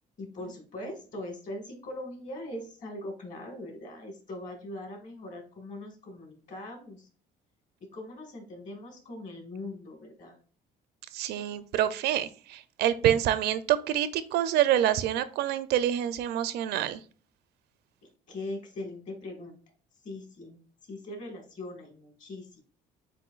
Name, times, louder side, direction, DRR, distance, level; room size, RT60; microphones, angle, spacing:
voice 1, 0.2-7.1 7.9-10.3 18.3-19.6 20.0-22.6, left 1 dB, 50° left, 3 dB, 2.0 m, -41 dB
voice 2, 11.1-17.0, right 11 dB, 75° right, 14 dB, 0.5 m, -27 dB
7.6 x 2.6 x 2.4 m, 0.40 s
cardioid pair, 110°, 17 cm